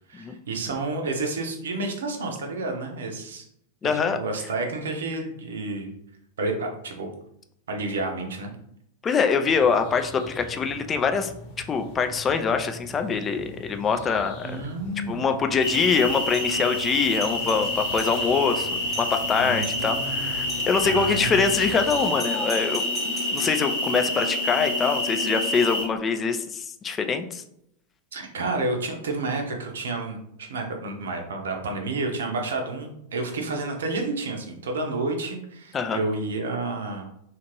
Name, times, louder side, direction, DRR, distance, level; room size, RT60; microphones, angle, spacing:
voice 1, 0.1-3.4 4.1-5.9 6.4-7.1 7.7-8.5 14.4-15.2 19.4-20.4 20.8-21.4 28.1-37.1, right 2 dB, 65° right, 3 dB, 0.6 m, -30 dB
voice 2, 3.8-4.2 9.0-11.3 11.7-14.6 15.1-27.4 35.7-36.0, left 5 dB, 20° left, 7 dB, 0.3 m, -24 dB
sound 1, 9.4-22.1, left 1 dB, 45° left, 0.9 m, -43 dB
sound 2, 15.6-25.8, left 1 dB, 70° left, 1.0 m, -28 dB
Doorbell, 16.3-16.6 17.0-18.3 18.6-18.7 18.9-19.2 19.6-19.9 20.5-20.9 21.9-23.6, right 2 dB, 15° right, 0.8 m, -40 dB
2.9 x 2.5 x 2.9 m, 0.74 s
figure-of-eight pair, 90°, 0 cm